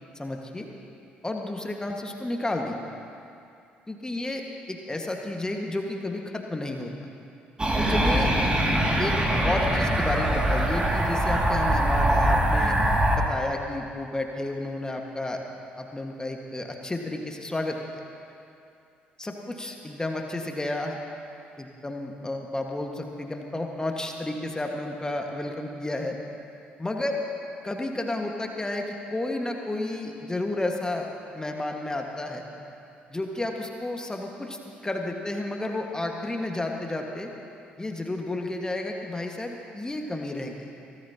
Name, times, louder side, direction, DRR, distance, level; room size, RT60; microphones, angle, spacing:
voice 1, 0.1-0.7 1.2-2.8 3.9-4.4 4.7-6.9 7.8-8.3 9.0-9.1 9.4-12.8 13.1-15.4 15.8-17.8 19.2-21.0 21.6-26.2 26.8-27.2 27.6-32.4 33.1-37.3 37.8-40.7, left 2 dB, 15° left, 2 dB, 1.7 m, -31 dB
sound 1, 7.6-13.2, right 1 dB, 20° right, 2.4 m, -23 dB
24.0 x 17.5 x 2.9 m, 2.6 s
figure-of-eight pair, 50°, 5 cm